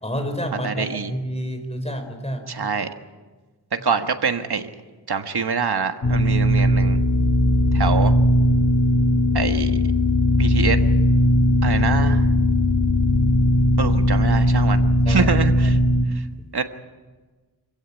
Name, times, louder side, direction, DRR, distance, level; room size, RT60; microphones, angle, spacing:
voice 1, 0.0-2.4 15.0-15.3, equal, 15° left, 5 dB, 4.4 m, -29 dB
voice 2, 0.6-1.1 2.5-2.9 3.8-4.6 5.1-7.0 7.7-8.1 9.3-9.8 10.4-10.8 11.6-12.3 13.8-14.8 15.1-15.8 16.5-16.6, right 5 dB, 70° right, 7 dB, 1.6 m, -25 dB
sound 1, 6.0-16.1, left 1 dB, 40° left, 1.9 m, -18 dB
25.5 x 15.5 x 9.0 m, 1.3 s
wide cardioid pair, 105°, 40 cm